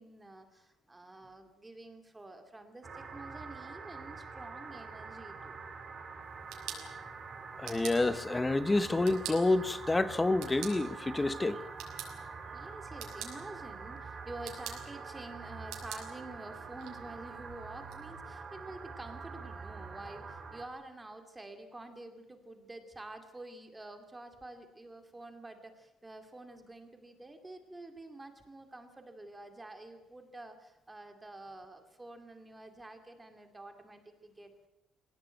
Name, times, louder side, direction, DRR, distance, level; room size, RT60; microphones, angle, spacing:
voice 1, 0.0-5.6 12.5-34.7, right 2 dB, 10° right, 2.4 m, -48 dB
sound 1, 2.8-20.6, right 4 dB, 25° right, 3.3 m, -45 dB
sound 2, 6.2-18.0, right 9 dB, 80° right, 6.0 m, -49 dB
voice 2, 7.6-11.6, left 2 dB, 10° left, 1.0 m, -28 dB
24.5 x 18.0 x 9.0 m
cardioid pair, 165°, 0 cm